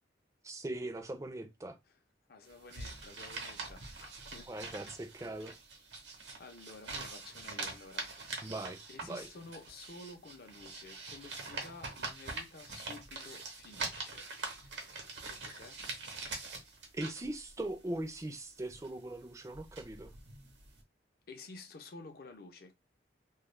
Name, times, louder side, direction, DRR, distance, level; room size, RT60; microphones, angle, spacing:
voice 1, 0.4-1.8 4.5-5.5 8.4-9.3 16.9-20.1, right 1 dB, 15° right, 0.4 m, -40 dB
voice 2, 2.3-4.7 6.4-8.1 8.9-14.3 15.3-15.8 21.3-22.8, left 3 dB, 55° left, 0.6 m, -51 dB
sound 1, 2.5-20.8, right 3 dB, 80° right, 0.9 m, -44 dB
2.3 x 2.1 x 3.1 m
head